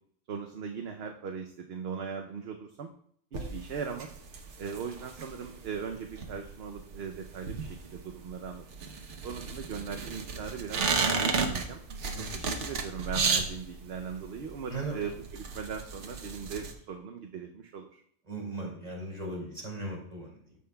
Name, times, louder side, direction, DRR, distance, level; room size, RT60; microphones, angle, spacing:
voice 1, 0.3-2.9 3.3-4.1 4.6-8.6 9.2-11.8 12.3-18.0, right 6 dB, 65° right, 4 dB, 0.9 m, -39 dB
sound 1, 3.3-16.7, right 5 dB, 80° right, 1.3 m, -34 dB
voice 2, 12.1-12.4 14.7-15.0 18.3-20.6, right 2 dB, 35° right, -2 dB, 2.6 m, -38 dB
15.0 x 5.6 x 2.3 m, 0.65 s
omnidirectional pair, 1.2 m